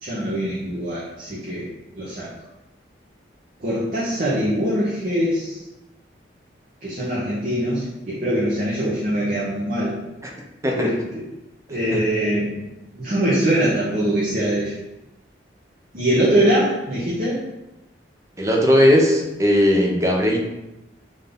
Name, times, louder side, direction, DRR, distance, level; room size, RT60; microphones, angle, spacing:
voice 1, 0.0-1.7 1.9-2.3 3.6-5.6 6.8-10.0 10.7-11.2 11.7-14.7 15.9-17.4, right 1 dB, 45° right, -7 dB, 0.8 m, -23 dB
voice 2, 18.4-20.4, equal, 15° right, -1 dB, 0.5 m, -18 dB
3.8 x 2.7 x 3.5 m, 0.96 s
head